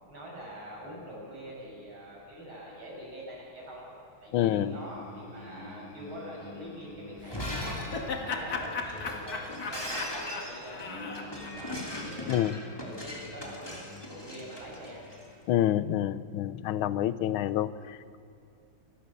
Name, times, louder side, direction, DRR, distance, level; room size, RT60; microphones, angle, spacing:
voice 1, 0.1-3.9 4.2-7.9 8.2-15.0, equal, 90° right, -3 dB, 7.2 m, -44 dB
voice 2, 4.3-4.7 12.3-12.5 15.5-18.2, left 12 dB, 90° left, 16 dB, 1.6 m, -28 dB
sound 1, 4.4-15.6, left 2 dB, 75° left, 3.8 m, -48 dB
Shatter, 7.2-15.2, left 1 dB, 10° left, 3.2 m, -39 dB
Laughter, 7.3-12.5, left 4 dB, 50° left, 2.2 m, -37 dB
27.5 x 20.0 x 6.8 m, 2.5 s
omnidirectional pair, 2.2 m